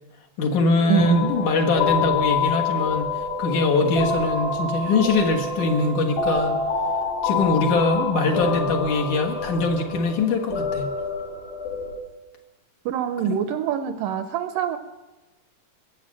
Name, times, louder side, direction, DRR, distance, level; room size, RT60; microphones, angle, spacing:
voice 1, 0.4-6.6 7.2-10.9 13.3-13.4, left 3 dB, 60° left, 0 dB, 2.8 m, -22 dB
voice 2, 0.9-1.3 12.9-14.8, right 10 dB, 80° right, 11 dB, 2.1 m, -24 dB
sound 1, 1.0-12.0, left 4 dB, 85° left, 3.9 m, -27 dB
20.5 x 8.3 x 7.4 m, 1.1 s
omnidirectional pair, 4.1 m